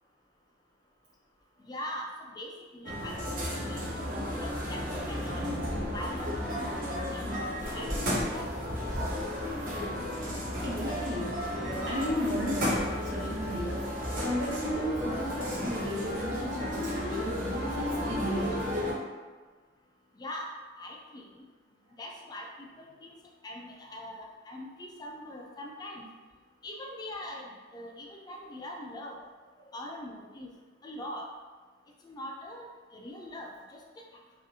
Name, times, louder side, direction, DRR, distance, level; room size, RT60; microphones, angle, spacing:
voice 1, 1.6-2.1 2.4-4.8 5.1-5.4 5.9-7.9 8.3-8.5 20.2-20.5 20.8-21.2 22.0-22.5 22.8-23.1 23.4-26.0 26.6-29.2 29.7-30.5 30.8-31.3 32.0-32.6 32.9-33.5, left 1 dB, 20° left, 0 dB, 0.3 m, -42 dB
sound 1, 2.8-18.9, left 1 dB, 45° right, 0.8 m, -33 dB
voice 2, 10.6-11.5 11.8-18.7 29.1-29.3 29.6-29.7, equal, 90° right, -5 dB, 1.0 m, -34 dB
3.5 x 2.4 x 2.8 m, 1.4 s
head